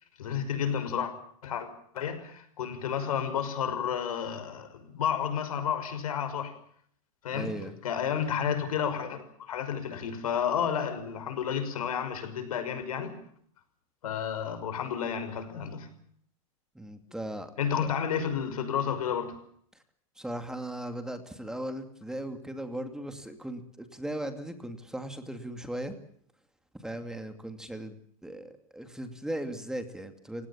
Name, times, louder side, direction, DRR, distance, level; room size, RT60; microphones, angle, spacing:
voice 1, 0.2-1.1 1.4-1.7 1.9-6.6 7.2-7.5 7.8-13.2 14.0-15.9 17.6-19.4, left 8 dB, 90° left, 5.9 m, -31 dB
voice 2, 7.3-7.8 16.7-17.5 17.8-17.9 20.2-25.9 26.7-30.5, right 1 dB, 5° right, 2.5 m, -38 dB
30.0 x 17.0 x 7.3 m
supercardioid pair, 135°, 18 cm